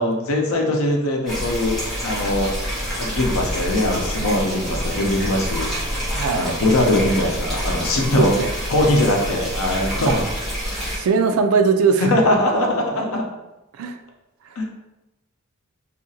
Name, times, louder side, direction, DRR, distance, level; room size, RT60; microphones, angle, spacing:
voice 1, 0.0-2.5 3.0-5.7 6.3-8.3 8.7-10.2 12.1-13.2 14.6-14.7, left 1 dB, 80° left, 1 dB, 0.6 m, -21 dB
sound 1, 1.3-11.0, equal, ahead, 1.0 m, -27 dB
voice 2, 6.1-6.5 8.0-8.5 10.1-10.2 11.0-12.1 13.8-14.0, right 5 dB, 90° right, 7 dB, 0.3 m, -20 dB
2.8 x 2.4 x 2.7 m, 0.96 s
head